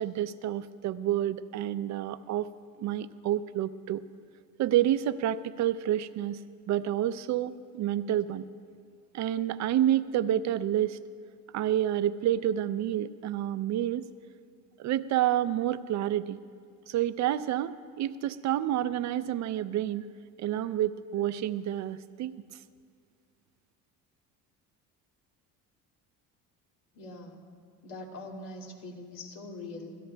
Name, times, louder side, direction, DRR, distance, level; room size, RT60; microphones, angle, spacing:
voice 1, 0.0-2.5 2.8-4.0 4.6-6.4 6.7-8.5 9.1-11.0 11.5-14.1 14.8-16.4 16.9-20.1 20.4-22.4, right 12 dB, 55° right, 13 dB, 0.5 m, -29 dB
voice 2, 26.9-27.4 27.8-30.0, left 2 dB, 65° left, -1 dB, 2.4 m, -42 dB
25.5 x 17.0 x 2.3 m, 2.1 s
cardioid pair, 120°, 35 cm